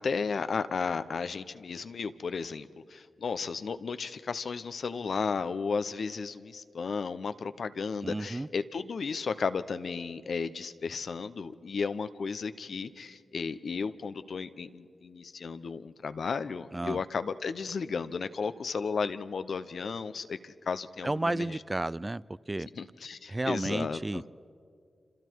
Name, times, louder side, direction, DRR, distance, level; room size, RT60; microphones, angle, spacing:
voice 1, 0.0-21.6 22.7-24.2, left 5 dB, 75° left, 0.8 m, -34 dB
voice 2, 8.0-8.5 16.7-17.0 21.0-22.7 23.3-24.2, right 2 dB, 25° right, 0.5 m, -32 dB
27.0 x 26.5 x 4.7 m
cardioid pair, 40°, 0 cm